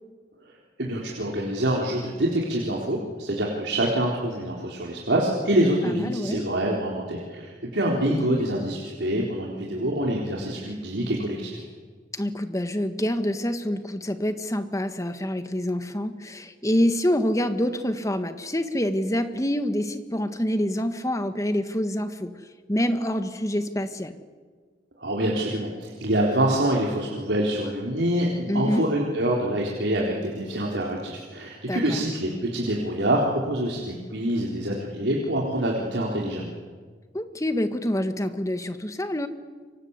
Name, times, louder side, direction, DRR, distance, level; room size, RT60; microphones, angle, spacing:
voice 1, 0.8-11.6 25.0-36.5, right 1 dB, 80° right, -2 dB, 4.0 m, -26 dB
voice 2, 5.8-6.4 8.0-8.5 12.1-22.3 22.7-24.2 28.5-28.9 31.7-32.0 37.1-39.3, left 1 dB, 20° left, 9 dB, 1.7 m, -26 dB
28.5 x 24.5 x 8.3 m, 1.5 s
head